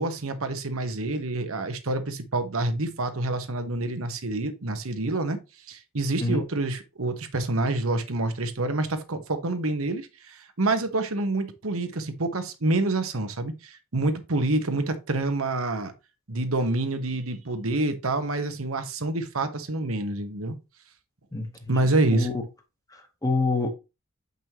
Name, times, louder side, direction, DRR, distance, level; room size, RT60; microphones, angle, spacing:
voice 1, 0.0-5.4 5.7-15.9 16.3-20.5 21.7-22.3, right 2 dB, 65° right, 1.2 m, -27 dB
voice 2, 21.3-21.7 22.1-22.3 22.9-23.7, left 3 dB, 15° left, 1.1 m, -27 dB
8.1 x 5.4 x 3.0 m
head